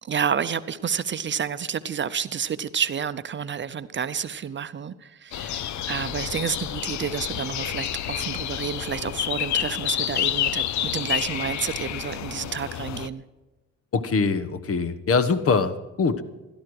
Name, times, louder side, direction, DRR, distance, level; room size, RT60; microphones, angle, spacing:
voice 1, 0.0-13.2, right 7 dB, 40° right, 0.7 m, -30 dB
sound 1, 5.3-13.1, left 11 dB, 70° left, 0.8 m, -29 dB
voice 2, 13.9-16.2, left 4 dB, 50° left, 1.3 m, -23 dB
17.0 x 12.5 x 4.8 m
cardioid pair, 90°, 30 cm